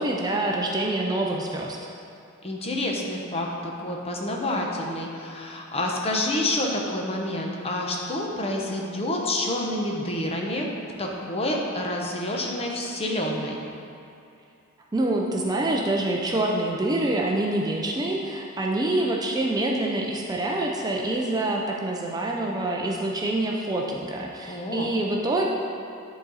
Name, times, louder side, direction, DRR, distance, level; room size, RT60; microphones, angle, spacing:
voice 1, 0.0-1.8 14.9-25.5, right 2 dB, 20° right, -1 dB, 0.5 m, -26 dB
voice 2, 2.4-10.7 11.0-13.6 24.5-24.9, left 1 dB, 30° left, 0 dB, 0.8 m, -28 dB
10.0 x 4.0 x 4.0 m, 2.5 s
head